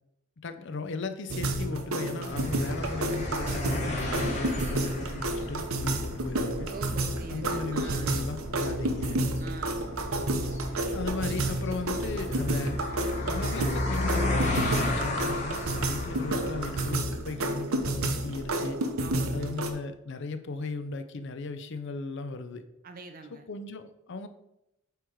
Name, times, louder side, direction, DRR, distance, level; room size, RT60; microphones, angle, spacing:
voice 1, 0.4-6.7 7.3-9.2 10.9-12.8 13.2-18.8 19.3-22.6 23.3-24.3, left 3 dB, 55° left, 9 dB, 0.5 m, -37 dB
sound 1, 1.3-19.7, right 1 dB, 75° right, 0.8 m, -31 dB
sound 2, 2.3-17.0, left 1 dB, 35° left, 1.3 m, -34 dB
voice 2, 6.7-8.2 9.4-9.9 19.0-19.5 22.8-23.5, right 3 dB, 40° right, 7 dB, 0.6 m, -43 dB
8.0 x 3.1 x 4.9 m, 0.86 s
head